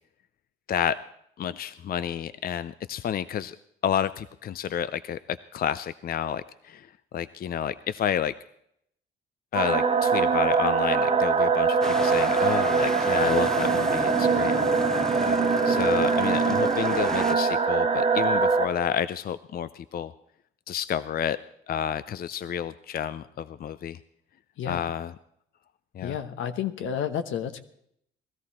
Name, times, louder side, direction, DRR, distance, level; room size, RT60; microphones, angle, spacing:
voice 1, 1.4-3.6 3.8-6.9 7.1-8.3 9.5-20.1 20.7-21.4 21.7-24.0 24.7-25.1 25.9-26.2, left 9 dB, 50° left, 15 dB, 0.5 m, -30 dB
sound 1, 9.5-18.7, right 5 dB, 35° right, 1.6 m, -23 dB
sound 2, 11.8-17.3, equal, 5° left, 0.7 m, -33 dB
voice 2, 26.0-27.6, left 8 dB, 80° left, 9 dB, 1.2 m, -31 dB
19.0 x 13.5 x 4.3 m, 0.72 s
cardioid pair, 90°, 20 cm